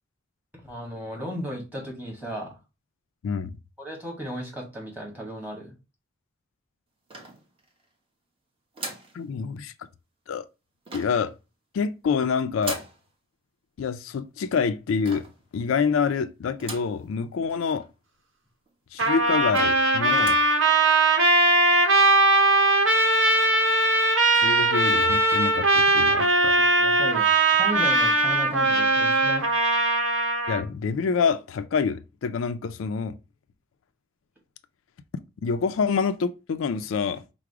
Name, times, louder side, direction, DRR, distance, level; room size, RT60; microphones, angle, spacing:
voice 1, 0.6-2.6 3.8-5.7 26.8-29.5, equal, 10° right, 1.5 m, -35 dB
voice 2, 3.2-3.6 9.1-9.7 10.3-10.5 10.9-11.3 11.7-12.8 13.8-15.2 15.5-17.8 18.9-20.4 24.3-26.6 30.5-33.2 35.4-37.2, left 5 dB, 80° left, 0.4 m, -26 dB
sound 1, 7.1-7.8 8.7-9.2 10.8-11.3 12.6-13.0 15.0-15.4 16.6-17.0 17.5-17.6 17.8-17.9 18.7-18.8 19.2-19.3 19.5-19.9 20.1-20.5, right 2 dB, 25° right, 1.0 m, -38 dB
Trumpet, 19.0-30.6, right 2 dB, 70° right, 0.9 m, -20 dB
4.8 x 2.1 x 4.6 m
head